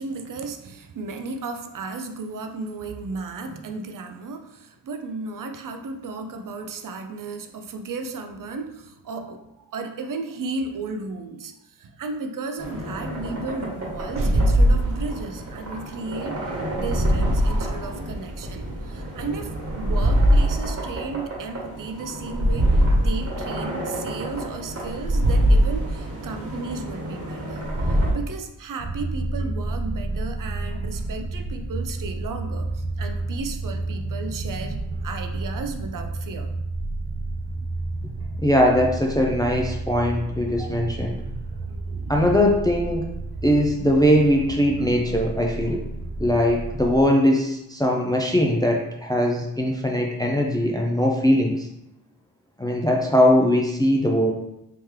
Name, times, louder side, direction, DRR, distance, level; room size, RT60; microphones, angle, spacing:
voice 1, 0.0-36.5, right 3 dB, 55° right, 6 dB, 0.5 m, -34 dB
sound 1, 12.6-28.1, equal, 40° right, 1.2 m, -24 dB
sound 2, 28.8-47.0, right 2 dB, 75° right, 0.9 m, -31 dB
voice 2, 38.4-41.2 42.1-43.1 43.4-45.8 46.2-51.7 52.6-54.3, equal, 10° left, -1 dB, 0.3 m, -20 dB
3.6 x 2.9 x 3.1 m, 0.86 s
wide cardioid pair, 125°, 39 cm